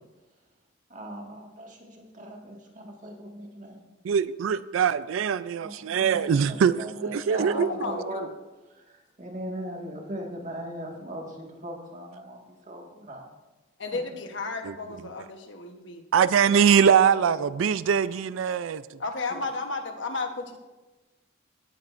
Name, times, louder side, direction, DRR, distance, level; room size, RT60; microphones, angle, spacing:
voice 1, 0.9-3.8 5.6-8.3 8.7-13.3 13.9-14.1 19.3-19.4, right 1 dB, 40° right, 0 dB, 1.8 m, -39 dB
voice 2, 4.0-7.7 14.7-14.8 16.1-18.8, right 7 dB, 85° right, 16 dB, 0.4 m, -22 dB
voice 3, 7.3-8.3 13.8-16.0 16.5-17.5 19.0-20.6, left 3 dB, 65° left, 5 dB, 1.1 m, -34 dB
17.5 x 9.1 x 2.6 m, 1.2 s
head